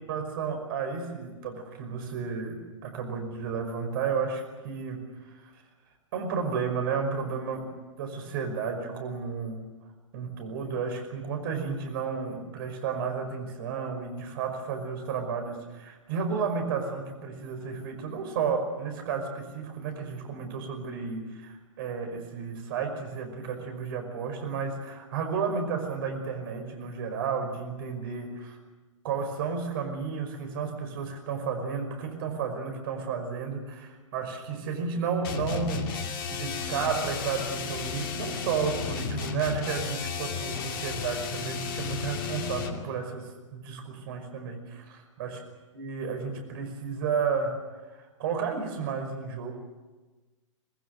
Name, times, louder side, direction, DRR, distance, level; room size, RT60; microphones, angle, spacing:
voice 1, 0.1-5.6 6.1-9.6 10.1-28.6 29.0-35.9 36.3-44.7 45.2-45.4 45.7-47.6 47.9-49.5, right 5 dB, 45° right, 5 dB, 5.4 m, -32 dB
sound 1, 35.2-42.8, left 5 dB, 45° left, 2.5 m, -33 dB
25.0 x 19.5 x 8.0 m, 1.2 s
figure-of-eight pair, 115°, 16 cm